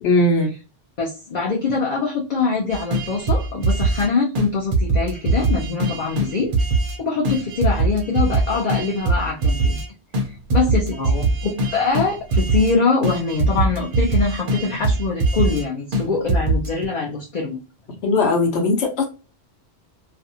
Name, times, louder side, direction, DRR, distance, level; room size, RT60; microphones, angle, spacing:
voice 1, 0.0-0.5 11.0-11.2 18.0-19.0, left 2 dB, 65° left, 1.0 m, -19 dB
voice 2, 1.0-6.5 7.0-9.8 10.5-11.0 11.4-17.6, left 4 dB, 50° left, 0.6 m, -23 dB
sound 1, 2.7-4.1 4.4-4.5 4.7-7.0 7.2-9.9 10.1-10.2 10.5-12.8 13.0-15.6 15.9-16.0 16.3-16.9, right 2 dB, 55° right, 0.7 m, -21 dB
2.5 x 2.2 x 2.7 m
omnidirectional pair, 1.2 m